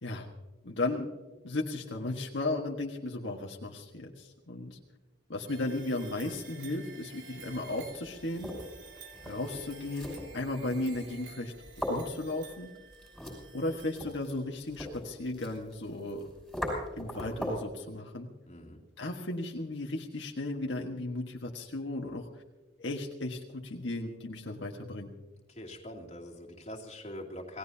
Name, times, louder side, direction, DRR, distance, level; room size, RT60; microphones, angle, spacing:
voice 1, 0.6-1.1 1.4-4.8 5.3-8.5 9.2-11.5 11.9-12.7 13.5-16.3 17.0-18.3 19.0-22.3 22.8-25.1, left 2 dB, 70° left, 0 dB, 1.5 m, -35 dB
sound 1, 5.5-14.5, right 5 dB, 75° right, 3.4 m, -52 dB
Handling rocks, 7.5-17.7, equal, ahead, 6.0 m, -41 dB
voice 2, 18.5-18.8 25.5-27.6, left 1 dB, 35° left, -1 dB, 2.7 m, -43 dB
27.5 x 18.0 x 2.8 m, 1.2 s
head